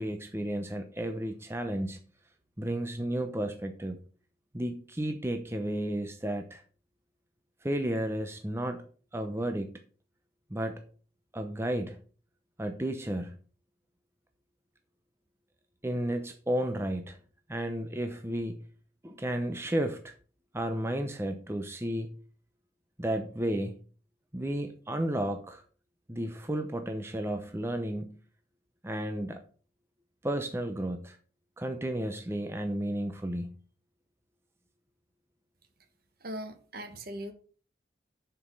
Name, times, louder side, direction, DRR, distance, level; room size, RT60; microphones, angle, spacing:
voice 1, 0.0-2.0 2.6-4.0 4.5-6.6 7.6-8.8 9.1-9.7 10.5-10.8 11.3-12.0 12.6-13.3 15.8-17.2 17.5-18.6 19.0-20.1 20.5-22.1 23.0-23.8 24.3-25.6 26.1-28.2 28.8-29.4 30.2-31.2 31.6-33.6, right 1 dB, 15° right, 0.7 m, -32 dB
voice 2, 36.2-37.3, equal, 50° right, 1.3 m, -39 dB
7.1 x 6.8 x 5.3 m
head